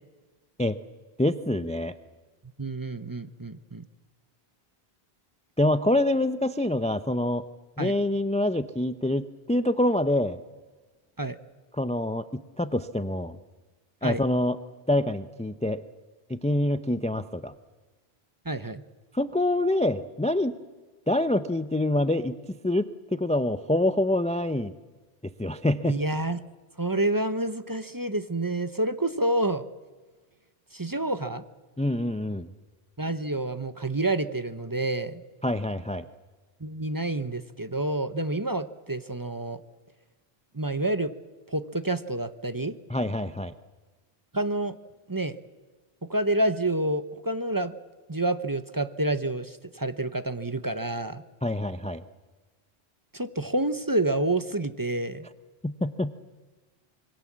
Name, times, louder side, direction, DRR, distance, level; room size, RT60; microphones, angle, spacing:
voice 1, 1.2-1.9 5.6-7.4 7.8-10.4 11.7-13.4 14.0-14.6 14.9-15.8 16.3-17.5 19.1-20.5 21.1-24.7 25.4-26.0 31.8-32.5 35.4-36.1 42.9-43.5 51.4-52.0 55.6-56.1, left 1 dB, 10° left, 12 dB, 0.5 m, -26 dB
voice 2, 2.6-3.8 7.8-7.9 11.2-11.4 14.0-14.2 18.4-18.8 25.8-26.4 26.8-29.6 30.7-31.4 33.0-35.2 36.6-39.6 40.5-41.1 41.5-42.7 44.3-44.7 45.1-45.4 46.1-47.7 48.1-51.2 53.1-55.3, right 2 dB, 20° right, 12 dB, 0.9 m, -28 dB
26.0 x 22.0 x 7.5 m, 1.3 s
omnidirectional pair, 1.0 m